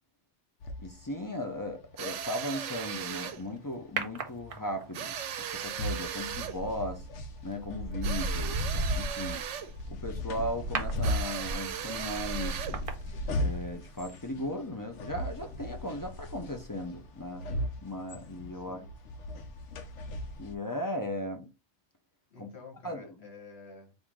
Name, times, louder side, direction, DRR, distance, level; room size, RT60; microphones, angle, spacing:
sound 1, 0.6-20.6, left 1 dB, 85° left, 0.9 m, -39 dB
voice 1, 0.8-7.1 7.4-8.6 8.9-9.4 9.9-12.8 13.4-17.5 17.8-18.8 20.4-21.5 22.4-22.5 22.8-23.1, left 1 dB, 30° left, 0.4 m, -37 dB
sound 2, 2.0-3.4 4.9-6.6 8.0-9.8 11.0-12.8, right 9 dB, 85° right, 0.9 m, -37 dB
sound 3, 4.0-5.0 6.9-7.1 7.6-13.8 14.1-14.2, right 2 dB, 50° right, 0.8 m, -35 dB
voice 2, 18.5-18.9 22.3-23.9, left 4 dB, 60° left, 1.7 m, -49 dB
3.6 x 2.6 x 4.5 m
omnidirectional pair, 1.2 m